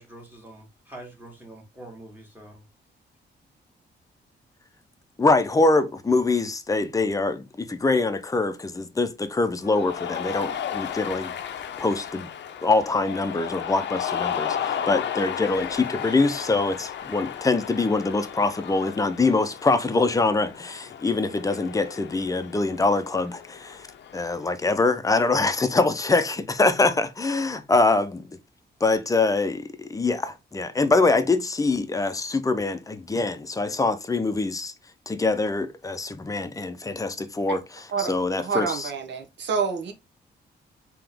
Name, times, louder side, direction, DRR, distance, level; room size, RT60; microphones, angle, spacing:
voice 1, 0.0-2.7, right 1 dB, 10° right, 1.8 m, -45 dB
voice 2, 5.2-11.3 11.8-12.3 12.6-23.9 24.1-28.2 28.8-34.7 35.1-38.9, left 3 dB, 20° left, 0.5 m, -24 dB
Cheering, 9.6-24.5, left 9 dB, 75° left, 0.5 m, -34 dB
voice 3, 38.4-39.9, right 6 dB, 75° right, 0.9 m, -28 dB
3.7 x 2.9 x 3.4 m
cardioid pair, 110°, 18 cm